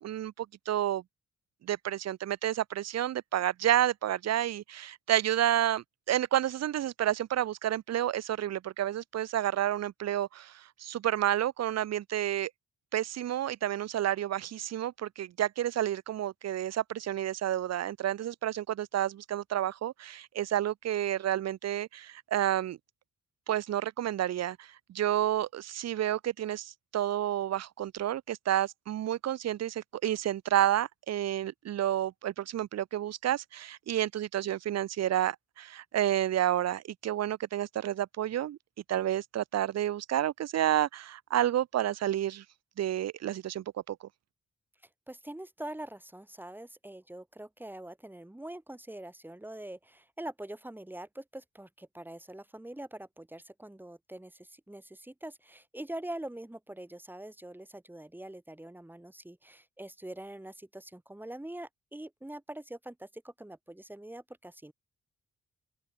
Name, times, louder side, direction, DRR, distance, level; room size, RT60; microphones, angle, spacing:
voice 1, 0.0-1.0 1.6-12.5 12.9-22.8 23.5-38.6 38.9-42.4 42.8-44.0, right 12 dB, 55° right, 0.5 m, -30 dB
voice 2, 45.1-64.7, right 1 dB, 5° right, 1.5 m, -44 dB
open air
wide cardioid pair, 140°, 31 cm